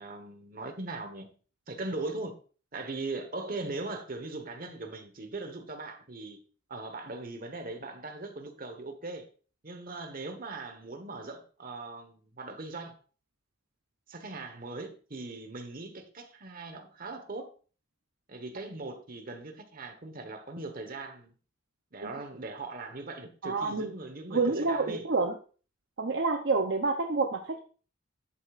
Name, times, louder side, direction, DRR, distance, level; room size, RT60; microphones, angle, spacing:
voice 1, 0.0-1.3 1.7-2.3 2.7-6.4 6.7-9.3 9.6-12.9 14.1-17.5 18.3-21.3 21.9-25.0, right 2 dB, 45° right, 1.4 m, -40 dB
voice 2, 23.4-23.9 24.3-25.3 26.0-27.6, right 3 dB, 60° right, 0.8 m, -28 dB
10.5 x 8.2 x 2.6 m
head